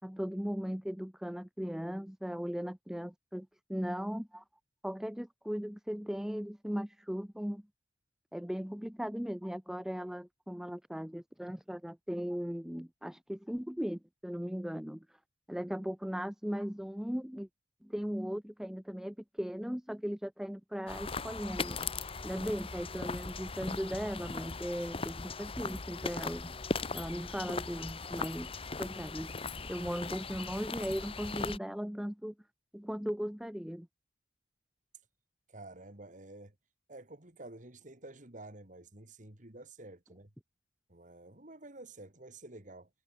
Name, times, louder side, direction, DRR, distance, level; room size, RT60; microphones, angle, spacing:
voice 1, 0.0-4.4 4.8-7.6 8.3-15.1 15.5-17.5 17.8-21.8 22.2-26.5 26.9-28.5 28.8-29.4 29.6-32.3 32.7-33.9, equal, 5° right, 0.4 m, -38 dB
sound 1, 20.9-31.6, left 4 dB, 30° left, 1.0 m, -39 dB
voice 2, 35.5-36.5 36.9-40.3 40.9-42.9, right 2 dB, 45° right, 2.9 m, -50 dB
head